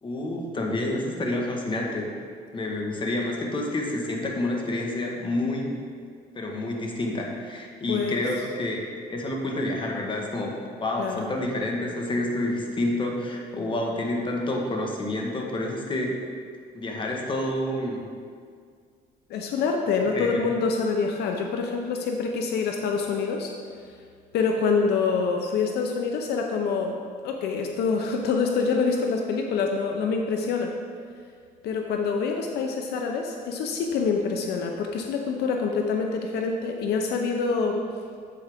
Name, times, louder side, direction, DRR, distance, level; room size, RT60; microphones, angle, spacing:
voice 1, 0.0-2.1 2.5-5.8 6.3-8.8 9.1-16.2 16.7-18.0 20.0-20.4, left 1 dB, 30° left, 0 dB, 1.4 m, -29 dB
voice 2, 7.9-8.2 11.0-11.3 19.3-23.5 24.3-27.0 27.2-30.7 31.6-37.8, left 5 dB, 75° left, 2 dB, 0.7 m, -26 dB
8.5 x 7.8 x 3.6 m, 2.1 s
cardioid pair, 110°, 17 cm